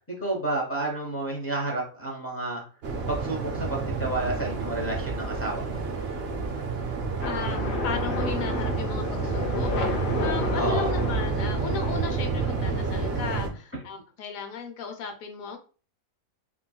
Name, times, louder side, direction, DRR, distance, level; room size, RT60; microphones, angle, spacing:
voice 1, 0.2-2.6 3.1-5.8 10.5-10.9, right 2 dB, 15° left, -2 dB, 0.5 m, -30 dB
Waves surf, 2.8-13.5, right 4 dB, 60° right, 0.7 m, -29 dB
voice 2, 7.2-15.6, left 6 dB, 75° left, 4 dB, 1.1 m, -35 dB
sound 1, 7.2-13.3, left 4 dB, 50° left, 0.7 m, -33 dB
3.6 x 2.3 x 2.2 m, 0.37 s
omnidirectional pair, 1.5 m